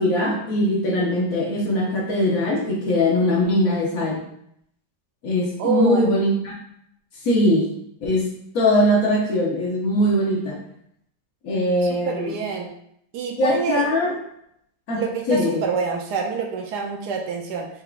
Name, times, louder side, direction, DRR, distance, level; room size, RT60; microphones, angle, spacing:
voice 1, 0.0-4.2 5.2-6.6 7.2-7.7 8.0-8.3 8.5-10.6 11.4-12.4 13.4-14.2 14.9-15.0 15.3-15.6, left 1 dB, 60° left, -2 dB, 1.1 m, -21 dB
voice 2, 5.6-6.1 11.9-12.7 13.1-13.8 14.9-17.7, right 5 dB, 75° right, 2 dB, 1.1 m, -26 dB
4.5 x 3.5 x 2.3 m, 0.72 s
omnidirectional pair, 1.9 m